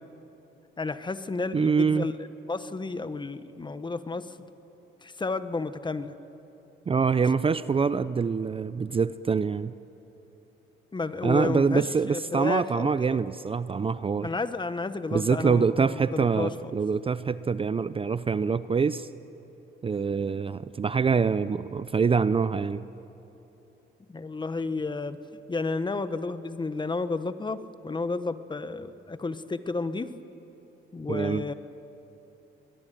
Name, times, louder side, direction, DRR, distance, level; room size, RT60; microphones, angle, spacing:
voice 1, 0.8-4.5 5.0-6.1 10.9-12.9 14.2-15.6 15.9-16.7 24.1-25.2 25.5-30.1 30.9-31.5, left 3 dB, 25° left, 12 dB, 1.1 m, -32 dB
voice 2, 1.5-2.1 6.9-9.7 11.2-14.3 15.1-19.1 19.8-22.8 31.1-31.4, right 5 dB, 30° right, 15 dB, 0.5 m, -25 dB
22.5 x 21.5 x 9.2 m, 3.0 s
cardioid pair, 90°, 20 cm